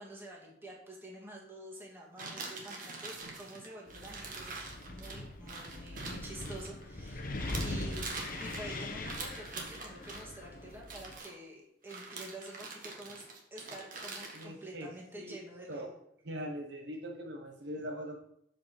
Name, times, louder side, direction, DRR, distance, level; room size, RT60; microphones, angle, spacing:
voice 1, 0.0-13.2 13.5-15.9, right 1 dB, 15° right, -3 dB, 2.0 m, -48 dB
sound 1, 2.2-7.1 7.4-10.2 10.8-11.3 11.9-14.5, right 3 dB, 45° right, 1.5 m, -44 dB
Wind, 3.9-11.2, left 2 dB, 50° left, 0.9 m, -41 dB
voice 2, 14.3-14.9 15.2-15.4 15.7-15.9 16.2-18.2, equal, 65° right, 2 dB, 1.1 m, -41 dB
6.7 x 5.2 x 6.0 m, 0.75 s
head